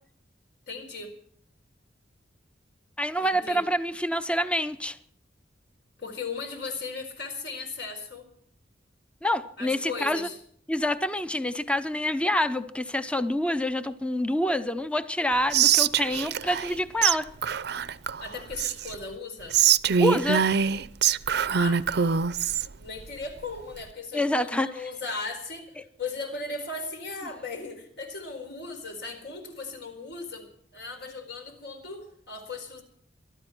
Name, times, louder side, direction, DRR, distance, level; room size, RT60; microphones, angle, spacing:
voice 1, 0.7-1.1 3.2-3.6 6.0-8.3 9.6-10.4 18.2-19.6 21.5-21.8 22.8-25.7 26.0-32.8, left 3 dB, 65° left, 5 dB, 4.5 m, -37 dB
voice 2, 3.0-5.0 9.2-10.3 10.7-17.3 20.0-20.4 24.1-24.9, left 1 dB, 5° left, 11 dB, 0.6 m, -27 dB
Whispering, 15.5-16.7 17.0-17.2 17.4-18.9 19.5-22.7, right 8 dB, 60° right, 0.6 m, -23 dB
23.5 x 13.0 x 4.5 m, 0.66 s
head